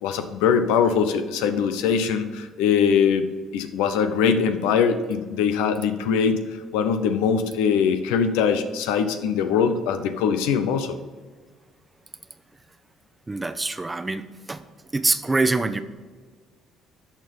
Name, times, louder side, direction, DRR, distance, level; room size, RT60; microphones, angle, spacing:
voice 1, 0.0-3.3 3.5-6.4 6.7-11.0, left 6 dB, 85° left, 9 dB, 0.8 m, -22 dB
voice 2, 13.3-14.6 14.9-15.8, right 3 dB, 20° right, 11 dB, 0.8 m, -24 dB
13.0 x 4.5 x 5.3 m, 1.5 s
supercardioid pair, 65°, 0 cm